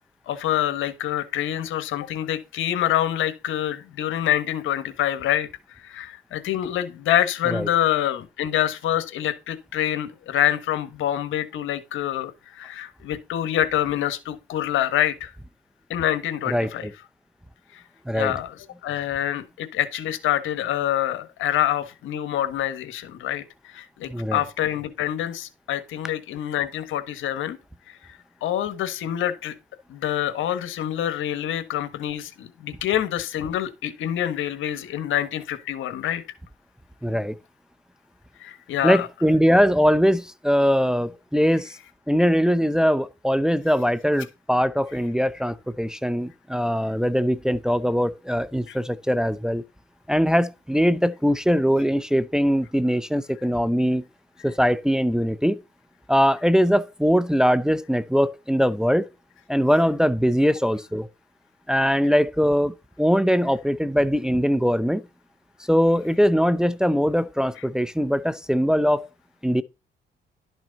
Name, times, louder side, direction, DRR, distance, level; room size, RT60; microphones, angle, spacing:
voice 1, 0.3-15.3 15.9-16.9 17.7-17.8 18.1-27.6 27.9-29.5 29.9-36.2 38.4-39.1 48.7-48.8, left 11 dB, 85° left, 1.5 m, -26 dB
voice 2, 16.5-16.9 18.1-18.3 24.1-24.4 37.0-37.3 38.8-41.8 42.1-49.6 50.1-54.0 54.4-55.6 56.1-59.0 59.5-61.1 61.7-65.0 65.7-69.1 69.4-69.6, equal, 5° right, 0.6 m, -21 dB
11.5 x 6.1 x 4.1 m
cardioid pair, 90°, 20 cm